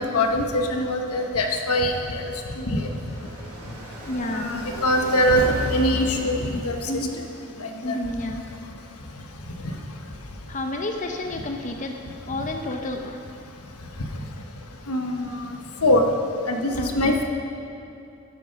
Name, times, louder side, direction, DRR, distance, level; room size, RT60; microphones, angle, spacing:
voice 1, 0.0-2.2 2.6-2.9 4.3-5.4 5.7-6.9 7.6-8.0 14.9-15.5 15.8-16.0 16.5-17.2, left 1 dB, 85° left, 3 dB, 1.3 m, -23 dB
Car passing by, 2.1-7.3, right 1 dB, 75° right, 2.7 m, -35 dB
voice 2, 4.0-4.6 6.9-7.2 7.8-8.4 10.5-11.9 12.3-13.2 16.8-17.1, left 1 dB, 35° left, 3 dB, 0.8 m, -30 dB
12.5 x 11.5 x 5.3 m, 2.6 s
head